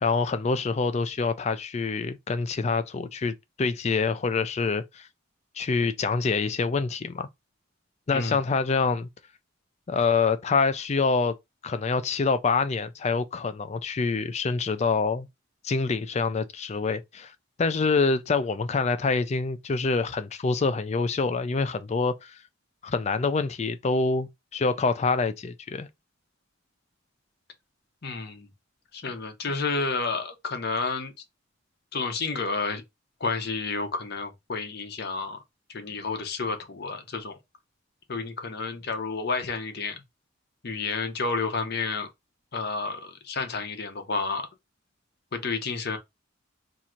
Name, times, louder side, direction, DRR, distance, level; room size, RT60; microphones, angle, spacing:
voice 1, 0.0-5.1 5.6-7.3 8.1-9.1 9.9-11.3 11.6-15.3 15.6-17.3 17.6-22.3 22.8-25.9, left 4 dB, 35° left, 0.4 m, -26 dB
voice 2, 28.0-28.5 28.9-31.1 31.9-32.8 33.2-35.4 35.7-37.4 38.1-40.0 40.6-42.1 42.5-44.4 45.3-46.0, left 4 dB, 55° left, 0.8 m, -30 dB
2.8 x 2.5 x 4.3 m
head